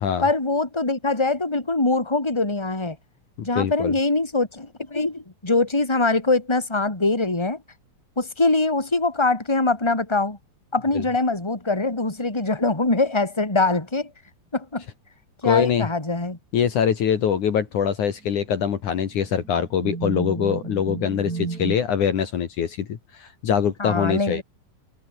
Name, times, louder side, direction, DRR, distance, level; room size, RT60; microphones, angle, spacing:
voice 1, 0.2-3.0 3.4-7.6 8.2-10.4 10.7-14.1 14.5-14.8 15.4-16.4 23.8-24.4, left 3 dB, 5° left, 3.7 m, -23 dB
voice 2, 3.5-3.9 10.9-11.0 15.4-15.9 16.5-24.4, left 8 dB, 60° left, 3.3 m, -23 dB
sound 1, 17.2-17.5 18.2-18.3 19.2-21.8, right 5 dB, 30° right, 2.4 m, -32 dB
omnidirectional pair, 4.0 m